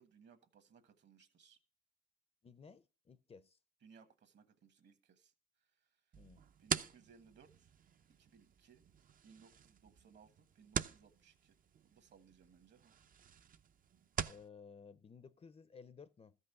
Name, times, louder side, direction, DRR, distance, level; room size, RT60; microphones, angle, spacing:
voice 1, 0.0-1.6 3.8-5.3 5.6-6.0 6.6-7.7 8.2-8.8 9.2-11.6 11.8-13.0, right 6 dB, 60° right, 1.5 m, -64 dB
voice 2, 2.4-3.6 6.2-6.4 14.2-16.4, left 5 dB, 30° left, 0.5 m, -57 dB
sound 1, 6.1-14.5, right 8 dB, 45° right, 0.5 m, -45 dB
13.5 x 5.4 x 6.8 m
cardioid pair, 90°, 20 cm